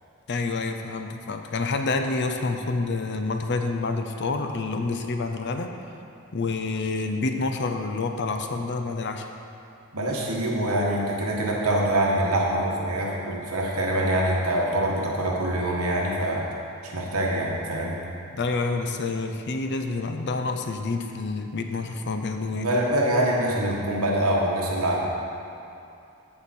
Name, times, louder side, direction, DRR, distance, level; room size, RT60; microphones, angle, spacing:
voice 1, 0.3-5.7 6.3-9.3 18.3-22.7, left 3 dB, 50° left, 5 dB, 0.6 m, -28 dB
voice 2, 9.9-16.4 16.8-18.0 22.5-25.0, right 1 dB, 75° right, -3 dB, 1.5 m, -24 dB
14.0 x 5.0 x 4.3 m, 2.6 s
head